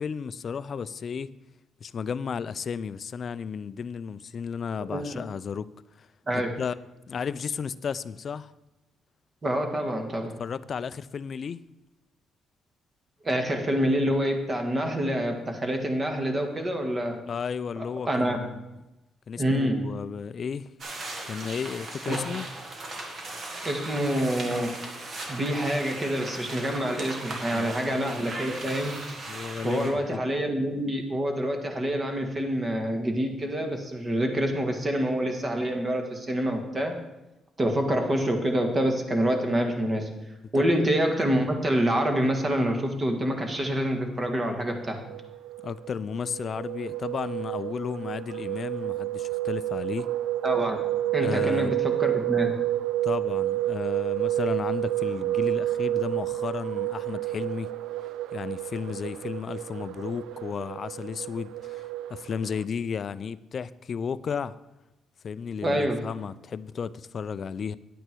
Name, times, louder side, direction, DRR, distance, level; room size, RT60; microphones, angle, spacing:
voice 1, 0.0-1.3 1.8-5.7 6.0-6.1 6.3-6.7 7.1-8.5 10.4-11.6 17.3-18.6 19.3-20.7 21.3-22.5 27.5-28.2 29.3-30.2 40.6-40.7 45.6-50.1 51.2-51.8 53.0-57.7 58.3-64.6 65.2-67.8, left 6 dB, 50° left, 0.4 m, -33 dB
voice 2, 4.8-5.2 6.3-6.5 9.4-10.3 13.2-17.2 18.0-18.4 19.4-19.8 22.1-22.2 23.7-24.7 25.3-28.9 29.6-37.0 37.6-40.1 40.5-45.0 50.4-50.8 51.1-52.6 65.6-66.0, right 1 dB, 30° right, 1.8 m, -26 dB
sound 1, 20.8-29.9, right 2 dB, 50° right, 2.0 m, -38 dB
sound 2, 44.9-62.6, right 14 dB, 85° right, 0.3 m, -30 dB
10.0 x 8.6 x 4.6 m
cardioid pair, 90°, 0 cm